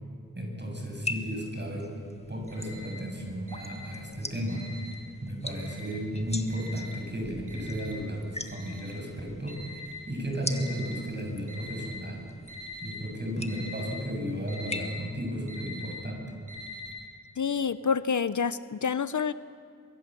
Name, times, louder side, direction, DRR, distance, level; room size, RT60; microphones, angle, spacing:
voice 1, 0.4-1.9 2.3-4.7 5.2-12.2 12.8-16.2, equal, 35° right, 1 dB, 7.4 m, -34 dB
sound 1, 0.9-14.8, left 2 dB, 20° left, 1.7 m, -43 dB
Alarm, 2.1-3.1 3.4-5.1 5.5-6.1 6.5-11.0 11.5-12.1 12.4-13.0 13.3-17.0, left 1 dB, 80° right, 7.8 m, -44 dB
voice 2, 17.4-19.3, left 6 dB, 70° left, 15 dB, 0.7 m, -28 dB
23.5 x 23.0 x 7.7 m, 2.2 s
wide cardioid pair, 50°, 31 cm